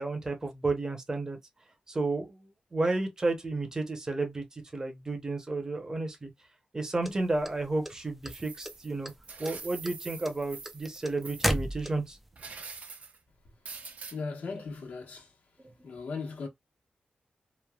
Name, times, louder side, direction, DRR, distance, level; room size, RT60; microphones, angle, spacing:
voice 1, 0.0-1.4 1.9-6.3 6.7-9.1 9.4-12.2, right 2 dB, 25° right, 0.7 m, -32 dB
sound 1, 7.0-8.3 8.6-9.2 9.4-12.3, equal, 5° right, 0.3 m, -32 dB
sound 2, 8.2-11.6 12.3-13.2 13.7-14.2, right 5 dB, 60° right, 0.5 m, -45 dB
voice 2, 14.1-15.3 15.8-16.5, left 4 dB, 80° left, 1.0 m, -37 dB
3.0 x 2.1 x 2.3 m
wide cardioid pair, 145°, 3 cm